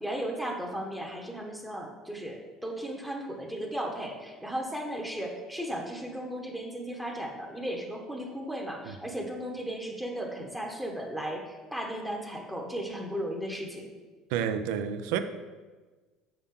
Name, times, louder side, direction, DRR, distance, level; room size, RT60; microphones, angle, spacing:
voice 1, 0.0-11.4 11.7-13.9, right 1 dB, 5° right, 0.8 m, -35 dB
voice 2, 14.3-15.2, right 8 dB, 80° right, 0.5 m, -29 dB
7.0 x 5.7 x 3.7 m
cardioid pair, 145°, 0 cm